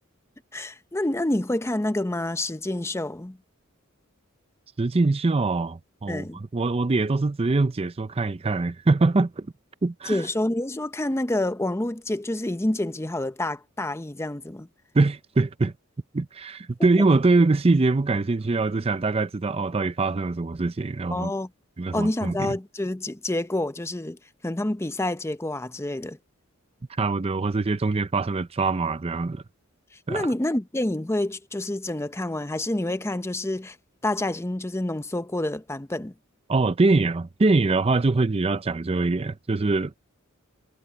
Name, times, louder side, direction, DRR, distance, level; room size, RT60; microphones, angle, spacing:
voice 1, 0.5-3.4 6.1-6.4 10.1-14.7 17.0-17.1 21.1-21.5 21.9-24.2 24.4-26.2 30.1-33.8 34.0-36.1, left 1 dB, 15° left, 0.6 m, -28 dB
voice 2, 4.8-9.5 9.8-10.2 14.9-15.7 16.1-21.3 21.8-22.5 27.0-29.4 30.1-30.3 36.5-40.0, right 3 dB, 30° right, 0.5 m, -23 dB
head